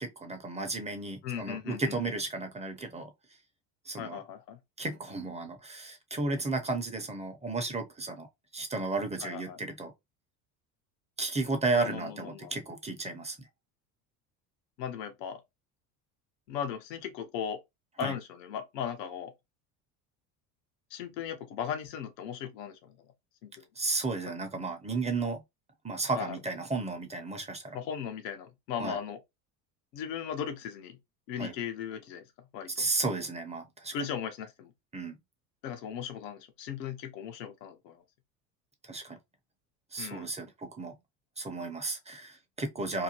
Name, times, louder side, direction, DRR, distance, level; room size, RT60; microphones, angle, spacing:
voice 1, 0.0-3.1 3.9-4.2 4.8-8.3 8.5-9.9 11.2-13.5 18.0-18.2 23.8-25.4 25.8-27.8 28.8-29.0 31.4-31.5 32.8-33.9 34.9-35.2 38.8-39.2 39.9-40.9 41.4-43.0, right 3 dB, 15° right, 0.8 m, -33 dB
voice 2, 1.2-2.0 4.0-4.6 9.2-9.6 11.7-12.6 14.8-15.4 16.5-17.6 18.0-19.3 20.9-22.9 23.4-23.5 26.1-26.4 27.7-29.2 29.9-31.0 31.3-32.2 32.5-32.9 33.9-34.7 35.6-38.0 40.0-40.3, left 8 dB, 75° left, 0.9 m, -37 dB
2.8 x 2.2 x 2.9 m
hypercardioid pair, 75°, 49 cm